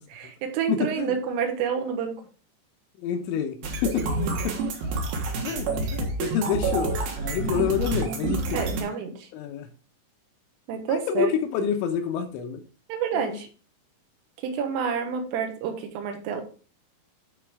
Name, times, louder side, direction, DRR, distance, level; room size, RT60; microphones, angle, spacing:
voice 1, 0.1-2.2 3.9-4.6 8.5-9.3 10.7-11.3 12.9-13.5 14.4-16.4, right 7 dB, 80° right, 5 dB, 3.7 m, -29 dB
voice 2, 0.7-1.1 3.0-4.1 4.4-4.6 5.4-5.7 5.9-6.9 7.2-8.9 9.3-9.7 10.9-12.6 13.1-13.3, left 8 dB, 80° left, 5 dB, 2.9 m, -28 dB
sound 1, 3.6-8.8, right 2 dB, 65° right, 2.8 m, -28 dB
12.5 x 4.4 x 3.6 m, 0.38 s
omnidirectional pair, 5.9 m